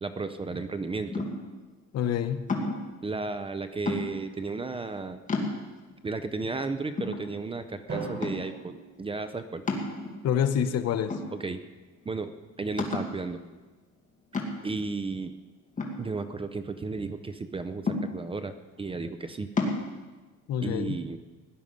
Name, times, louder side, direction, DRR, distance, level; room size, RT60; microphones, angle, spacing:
voice 1, 0.0-1.3 3.0-5.2 6.0-9.6 11.3-11.6 12.0-13.4 14.6-15.3 16.0-19.5 20.6-21.2, right 3 dB, 20° right, 10 dB, 0.6 m, -34 dB
sound 1, 1.1-1.6 2.5-2.9 3.9-4.4 4.9-5.0 5.3-5.9 6.5-6.6 7.0-7.7 8.2-8.6 9.7-10.4 11.1-11.7 12.1-12.2 12.8-13.2 14.3-14.8 15.8-16.7 17.9-18.5 19.6-19.8, left 3 dB, 25° left, 2.1 m, -31 dB
voice 2, 1.9-2.5 10.2-11.2 20.5-21.0, left 9 dB, 55° left, 9 dB, 1.0 m, -27 dB
Drum, 7.9-10.0, right 3 dB, 35° right, 4.8 m, -39 dB
17.5 x 11.0 x 5.4 m, 1.2 s
cardioid pair, 145°, 30 cm